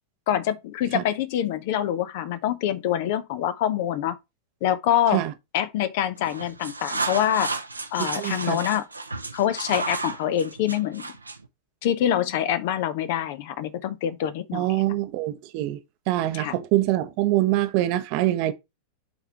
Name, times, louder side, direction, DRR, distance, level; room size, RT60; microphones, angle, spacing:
voice 1, 0.3-4.2 4.6-5.2 5.5-7.5 7.9-8.8 9.3-11.1 11.8-14.8 16.3-16.5, left 10 dB, 50° left, 0.7 m, -25 dB
sound 1, 6.2-11.5, right 3 dB, 80° right, 0.7 m, -32 dB
voice 2, 8.0-8.6 14.5-15.8 16.1-18.5, right 15 dB, 45° right, 0.8 m, -24 dB
7.0 x 3.6 x 4.3 m
figure-of-eight pair, 90°, 0 cm